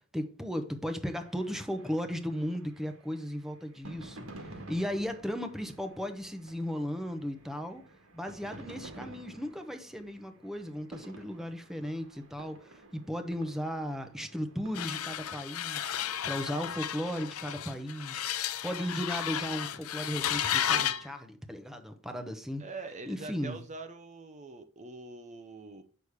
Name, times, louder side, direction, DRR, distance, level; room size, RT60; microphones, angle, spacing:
voice 1, 0.0-7.9 8.1-22.7 23.1-23.6, equal, ahead, 0.8 m, -36 dB
sound 1, 1.0-17.7, right 1 dB, 70° right, 1.8 m, -52 dB
sound 2, 14.7-21.1, left 10 dB, 70° left, 0.6 m, -33 dB
voice 2, 22.6-25.8, right 3 dB, 35° right, 0.7 m, -44 dB
8.1 x 6.4 x 3.5 m
head